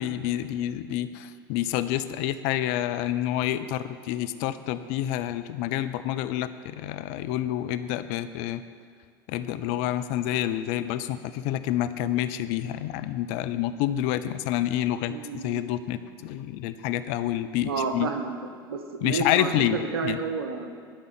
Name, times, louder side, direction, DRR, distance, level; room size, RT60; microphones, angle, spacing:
voice 1, 0.0-8.6 9.3-15.1 15.4-18.1 19.0-20.2, left 12 dB, 65° left, 12 dB, 0.6 m, -28 dB
voice 2, 15.1-15.6 17.7-18.3 18.7-20.7, right 5 dB, 85° right, 6 dB, 1.1 m, -30 dB
12.0 x 5.4 x 9.0 m, 2.1 s
hypercardioid pair, 80°, 12 cm